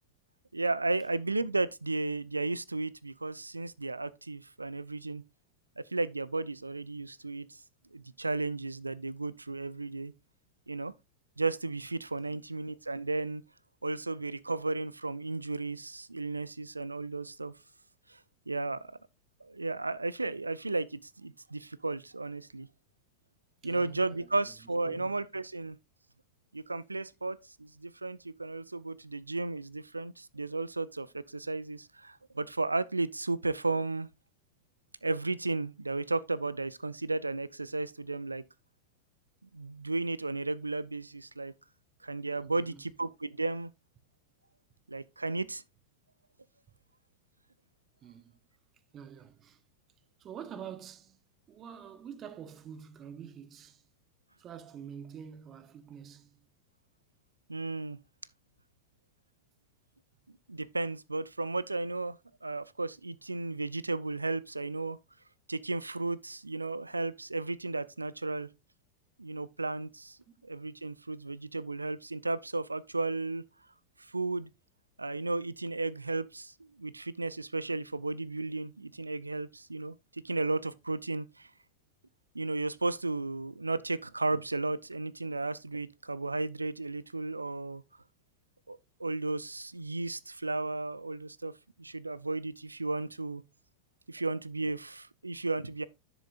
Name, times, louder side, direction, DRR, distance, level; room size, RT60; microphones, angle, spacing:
voice 1, 0.5-5.2 5.8-7.6 7.9-10.1 10.7-10.9 11.4-13.4 13.8-17.5 18.1-18.2 18.5-18.8 19.4-22.7 23.6-25.8 26.5-34.1 35.0-38.4 39.5-41.5 42.0-43.7 44.9-45.6 57.5-58.0 60.5-65.0 65.5-68.5 69.2-70.2 70.4-73.4 74.1-74.5 75.0-80.0 80.2-81.5 82.3-87.8 88.7-91.5 91.8-93.4 94.1-95.9, right 3 dB, 80° right, 0.4 m, -34 dB
voice 2, 23.6-24.5 24.9-25.1 42.4-42.9 48.0-48.4 48.9-49.6 50.2-51.2 51.5-53.8 54.4-56.5 70.3-70.4 78.0-78.1, right 8 dB, 30° right, 1.0 m, -47 dB
10.5 x 6.9 x 2.4 m
figure-of-eight pair, 90°, 0 cm